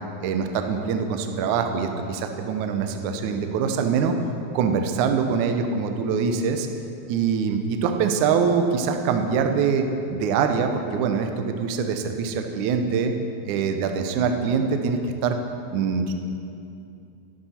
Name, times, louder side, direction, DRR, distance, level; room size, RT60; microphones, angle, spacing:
voice 1, 0.2-4.2 4.5-6.7 7.1-9.9 10.1-13.1 13.4-15.4 15.7-16.1, right 6 dB, 85° right, 6 dB, 1.7 m, -24 dB
13.0 x 11.5 x 4.3 m, 2.6 s
omnidirectional pair, 4.6 m